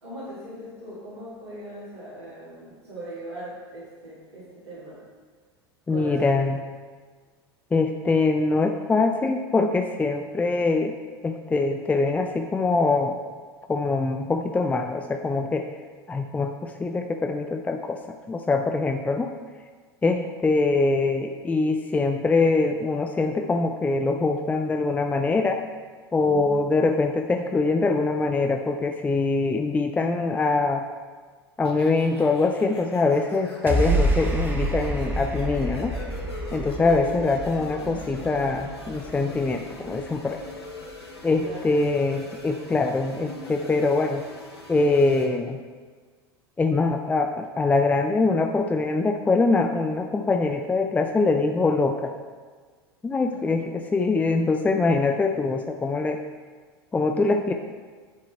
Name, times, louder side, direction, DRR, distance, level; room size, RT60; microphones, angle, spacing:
voice 1, 0.0-5.0 5.9-6.2 26.2-26.6 41.4-41.6 53.2-53.4, right 1 dB, 90° right, -13 dB, 2.3 m, -40 dB
voice 2, 5.9-6.6 7.7-11.0 11.2-13.2 13.7-15.7 16.1-18.0 18.3-19.3 20.0-25.6 26.1-30.8 31.6-36.0 36.5-40.4 41.2-44.2 44.7-45.6 46.6-52.1 53.0-56.2 56.9-57.5, left 3 dB, 10° left, 5 dB, 0.4 m, -23 dB
sound 1, 31.6-45.3, left 2 dB, 80° left, 1.0 m, -42 dB
sound 2, 33.7-40.1, right 1 dB, 15° right, 1.3 m, -28 dB
10.5 x 3.8 x 4.4 m, 1.5 s
figure-of-eight pair, 80°, 13 cm